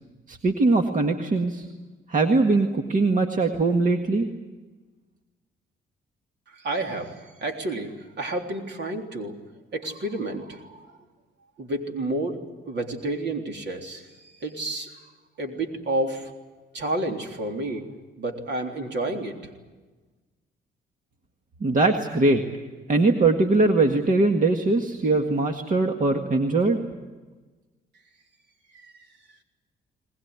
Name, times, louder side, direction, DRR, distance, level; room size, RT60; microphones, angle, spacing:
voice 1, 0.3-1.7 2.1-4.3 21.6-22.4 22.9-26.8, right 3 dB, 40° right, 4 dB, 1.8 m, -21 dB
voice 2, 6.5-9.4 9.7-11.0 11.6-12.4 12.6-15.0 15.4-16.3 16.7-17.9 18.2-19.5 28.7-29.1, right 2 dB, 60° right, 3 dB, 3.6 m, -30 dB
21.0 x 21.0 x 9.7 m, 1.3 s
cardioid pair, 90°, 20 cm